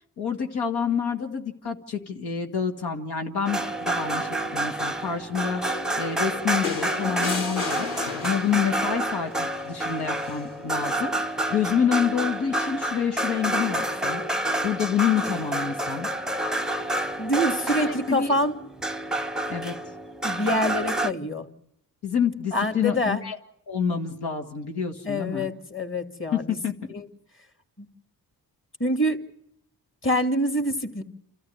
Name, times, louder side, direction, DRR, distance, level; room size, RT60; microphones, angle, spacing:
voice 1, 0.2-7.9 8.2-14.2 14.6-16.1 17.8-18.3 19.5-19.7 22.0-23.4 23.7-25.5 26.3-26.7, left 7 dB, 85° left, 3 dB, 2.0 m, -28 dB
sound 1, 3.5-21.1, right 1 dB, ahead, 0.8 m, -29 dB
sound 2, 6.6-8.8 10.2-10.4, left 5 dB, 55° left, 3.0 m, -33 dB
voice 2, 17.2-18.5 20.2-21.5 22.5-23.2 25.0-26.6 26.9-27.0 27.8-27.9 28.8-29.2 30.0-31.0, equal, 30° left, 7 dB, 2.7 m, -25 dB
28.0 x 13.5 x 9.6 m, 0.74 s
cardioid pair, 60°, 38 cm